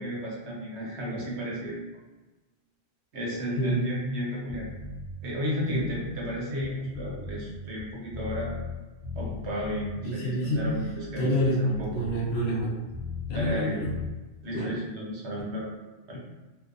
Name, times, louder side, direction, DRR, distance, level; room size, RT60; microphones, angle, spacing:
voice 1, 0.0-1.8 3.1-4.7 5.2-8.5 9.1-12.0 13.3-13.7 14.4-15.7 16.1-16.2, equal, 70° right, -4 dB, 1.0 m, -33 dB
sound 1, 4.5-5.1 5.6-8.8 9.0-9.9 10.4-13.6 13.8-14.1, left 3 dB, 35° right, 0.6 m, -38 dB
voice 2, 10.0-10.6 11.2-11.6 11.9-12.7 13.3-13.9 14.5-14.7, equal, 65° left, -4 dB, 0.8 m, -27 dB
2.6 x 2.1 x 2.4 m, 1.2 s
omnidirectional pair, 1.2 m